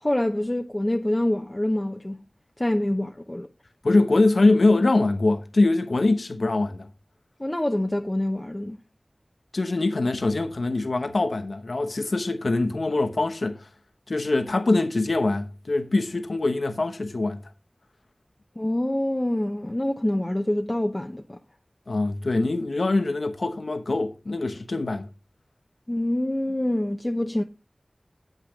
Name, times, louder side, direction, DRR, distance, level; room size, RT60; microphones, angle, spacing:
voice 1, 0.0-2.2 2.6-3.5 7.4-8.8 18.6-21.4 25.9-27.4, left 1 dB, 25° left, 0.9 m, -26 dB
voice 2, 3.8-6.9 9.5-13.7 14.1-17.4 21.9-25.1, left 2 dB, 85° left, 0.9 m, -23 dB
9.2 x 8.1 x 3.7 m
wide cardioid pair, 45°, 0 cm